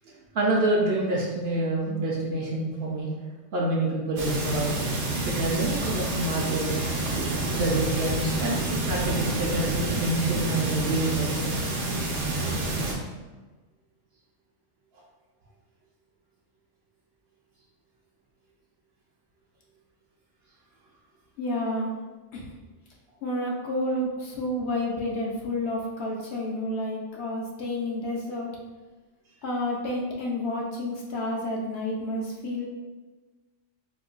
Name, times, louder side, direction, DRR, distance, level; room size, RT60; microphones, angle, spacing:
voice 1, 0.0-3.1 3.5-4.9 5.2-11.5, right 2 dB, 60° right, -3 dB, 0.7 m, -27 dB
sound 1, 4.2-12.9, right 2 dB, 75° right, 1.1 m, -28 dB
voice 2, 21.4-21.9 22.3-22.5 23.2-28.5 29.4-32.7, left 1 dB, 65° left, -2 dB, 0.8 m, -30 dB
4.3 x 2.2 x 2.4 m, 1.3 s
omnidirectional pair, 1.3 m